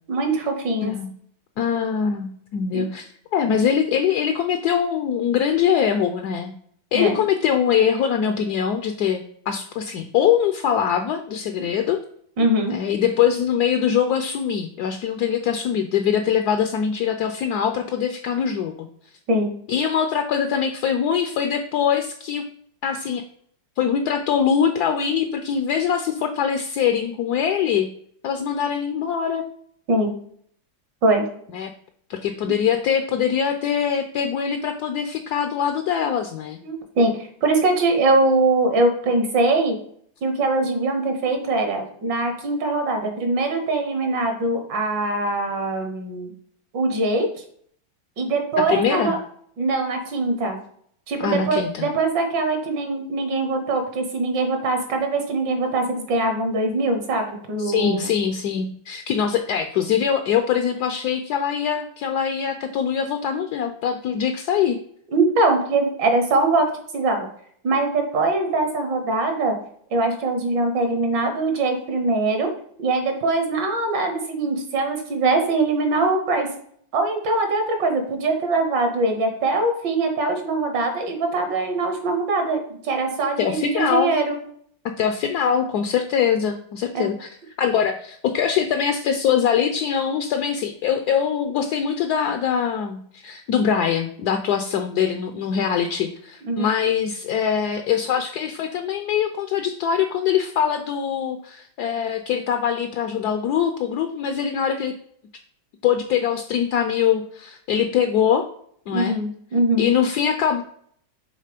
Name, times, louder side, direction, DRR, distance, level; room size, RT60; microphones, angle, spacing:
voice 1, 0.1-0.9 2.7-2.8 6.9-7.2 12.4-12.7 19.3-19.5 29.9-30.1 31.0-31.2 36.6-39.8 40.2-46.3 46.7-47.3 48.2-49.2 49.6-50.6 51.1-58.1 65.1-66.6 66.9-67.3 67.6-69.5 69.9-72.5 72.8-76.5 76.9-84.4 86.9-87.1 96.4-96.7 108.9-109.9, right 2 dB, 70° right, 5 dB, 1.8 m, -22 dB
voice 2, 1.6-6.5 6.9-12.0 12.7-18.8 19.7-22.5 22.8-23.2 23.8-27.9 28.2-29.4 31.5-31.7 32.1-36.6 48.7-49.1 51.2-51.9 57.6-64.8 83.4-84.1 85.0-87.3 87.6-104.9 105.8-108.4 108.9-109.2 109.8-110.6, left 8 dB, 70° left, 6 dB, 1.0 m, -23 dB
6.6 x 3.6 x 5.1 m, 0.63 s
omnidirectional pair, 2.0 m